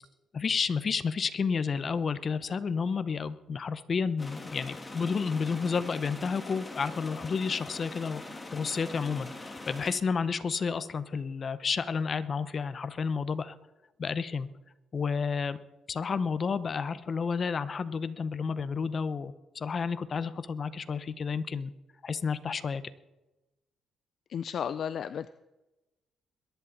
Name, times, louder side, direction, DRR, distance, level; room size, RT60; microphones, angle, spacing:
voice 1, 0.3-8.2 8.5-13.6 14.0-14.5 14.9-15.6 15.9-21.7 22.0-22.8, left 5 dB, 45° left, 14 dB, 0.9 m, -31 dB
sound 1, 4.2-9.9, left 2 dB, 20° left, 2.0 m, -42 dB
voice 2, 24.3-25.3, left 8 dB, 60° left, 13 dB, 0.4 m, -33 dB
22.0 x 10.5 x 4.1 m, 1.0 s
cardioid pair, 90°, 0 cm